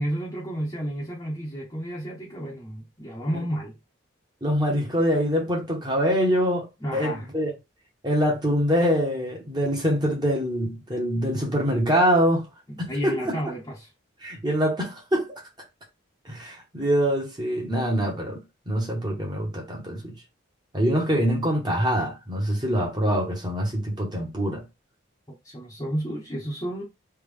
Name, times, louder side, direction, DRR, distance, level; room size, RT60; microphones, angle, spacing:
voice 1, 0.0-3.7 6.8-7.3 12.7-13.9 25.4-26.8, equal, 20° left, 0.8 m, -31 dB
voice 2, 4.4-6.7 6.9-7.5 8.0-12.5 12.8-13.4 14.2-15.3 16.2-20.2 20.7-24.6, equal, 20° right, 1.0 m, -24 dB
3.4 x 2.4 x 3.4 m
head